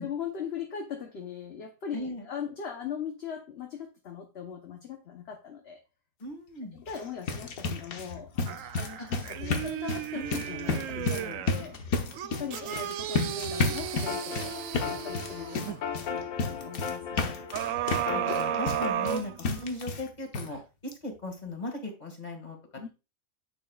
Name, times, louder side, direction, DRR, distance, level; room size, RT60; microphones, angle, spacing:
voice 1, 0.0-5.8 6.7-11.7 12.2-14.5 14.9-17.4 22.8-22.9, left 7 dB, 50° left, 3 dB, 1.1 m, -40 dB
voice 2, 1.9-2.3 6.2-6.8 9.0-9.1 10.1-10.4 18.1-22.6, left 2 dB, 30° left, 2 dB, 2.1 m, -38 dB
sound 1, 6.8-20.1 20.3-20.5 20.9-21.0 21.3-21.4, left 3 dB, 90° left, 1.5 m, -33 dB
sound 2, 8.5-11.6 12.1-15.8 17.5-19.9 20.4-20.5, right 11 dB, 70° right, 0.9 m, -34 dB
sound 3, 13.8-18.9, left 6 dB, 75° left, 1.3 m, -37 dB
10.0 x 6.7 x 2.4 m, 0.30 s
omnidirectional pair, 1.5 m